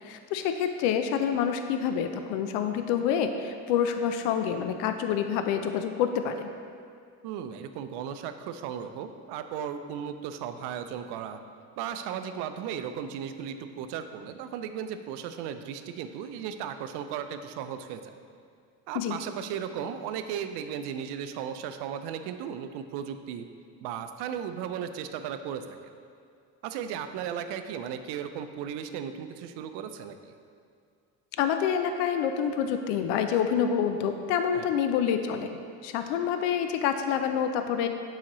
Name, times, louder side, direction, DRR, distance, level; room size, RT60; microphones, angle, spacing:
voice 1, 0.0-6.5 18.9-19.2 31.4-37.9, left 8 dB, 75° left, 7 dB, 0.5 m, -27 dB
voice 2, 7.2-11.4 11.8-18.1 18.9-23.5 23.8-25.9 26.6-30.4 34.5-34.7, right 8 dB, 75° right, 9 dB, 0.5 m, -36 dB
7.2 x 4.9 x 3.0 m, 2.3 s
supercardioid pair, 95°, 41 cm